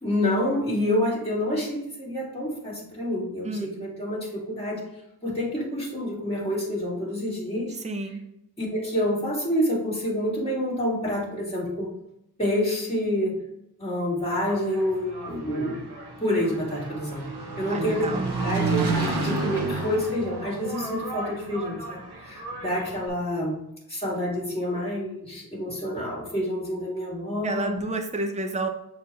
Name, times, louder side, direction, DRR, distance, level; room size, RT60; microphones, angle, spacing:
voice 1, 0.0-4.8 5.2-7.7 8.6-11.9 12.4-13.4 13.8-15.8 16.2-17.3 17.6-18.1 18.4-18.9 19.2-23.6 23.9-27.8, left 1 dB, 15° left, -6 dB, 2.3 m, -28 dB
voice 2, 7.7-8.2 17.7-18.3 27.4-28.7, right 2 dB, 20° right, 5 dB, 0.6 m, -30 dB
Engine, 14.2-23.1, right 3 dB, 85° right, 1.2 m, -31 dB
6.9 x 4.4 x 3.2 m, 0.82 s
wide cardioid pair, 105°, 38 cm